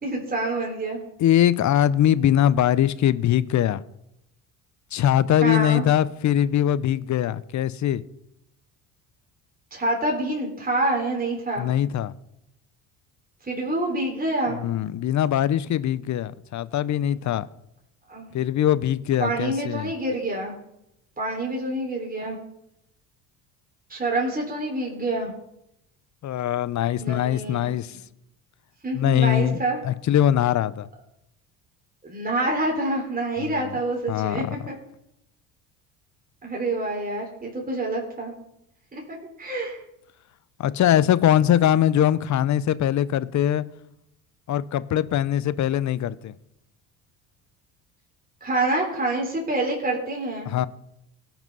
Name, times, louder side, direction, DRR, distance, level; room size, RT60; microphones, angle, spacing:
voice 1, 0.0-1.0 5.4-5.8 9.7-11.7 13.5-14.6 18.1-18.3 19.2-20.5 21.2-22.4 23.9-25.3 27.0-27.7 28.8-29.8 32.0-34.8 36.4-38.3 38.9-39.8 48.4-50.5, right 2 dB, 20° right, 3.7 m, -27 dB
voice 2, 1.2-3.8 4.9-8.0 11.6-12.1 14.5-17.4 18.3-19.9 26.2-28.0 28.9-30.9 33.4-33.5 34.1-34.6 40.6-43.6 44.5-46.3 50.4-50.7, left 11 dB, 45° left, 0.7 m, -22 dB
17.0 x 6.0 x 5.4 m
supercardioid pair, 75°, 41 cm